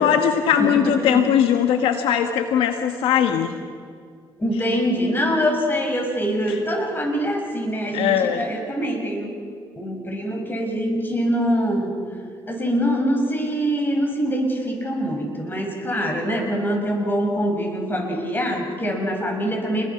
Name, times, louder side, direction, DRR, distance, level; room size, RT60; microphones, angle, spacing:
voice 1, 0.0-3.6 6.5-6.6 7.9-8.4, left 9 dB, 80° left, 6 dB, 1.4 m, -20 dB
voice 2, 0.6-1.3 4.4-9.3 9.7-12.0 12.5-19.9, equal, 20° left, 2 dB, 6.5 m, -24 dB
28.5 x 21.5 x 5.9 m, 2.1 s
supercardioid pair, 75°, 9 cm